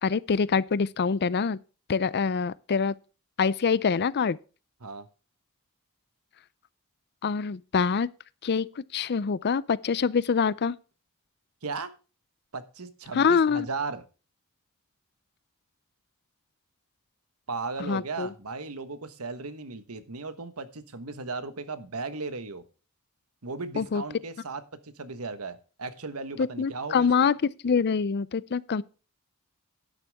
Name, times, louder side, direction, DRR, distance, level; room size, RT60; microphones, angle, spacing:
voice 1, 0.0-1.6 1.9-2.9 3.4-4.4 7.2-8.1 8.4-10.8 13.1-13.7 17.8-18.3 23.8-24.0 26.4-27.4 27.6-28.8, left 5 dB, 50° left, 0.5 m, -25 dB
voice 2, 12.5-14.0 17.5-22.6 23.4-27.1, right 3 dB, 90° right, 1.3 m, -36 dB
11.5 x 9.9 x 3.5 m
head